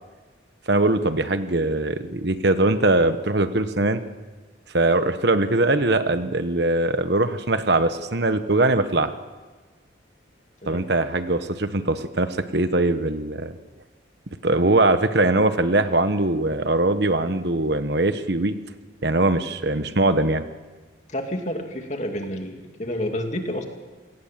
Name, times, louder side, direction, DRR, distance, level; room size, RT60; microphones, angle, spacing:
voice 1, 0.7-4.0 4.7-9.1 10.6-13.5 14.4-18.6 19.0-20.4, right 2 dB, 55° right, 10 dB, 1.2 m, -21 dB
voice 2, 21.1-23.6, left 1 dB, 35° left, 4 dB, 2.5 m, -29 dB
28.0 x 18.5 x 7.6 m, 1.3 s
head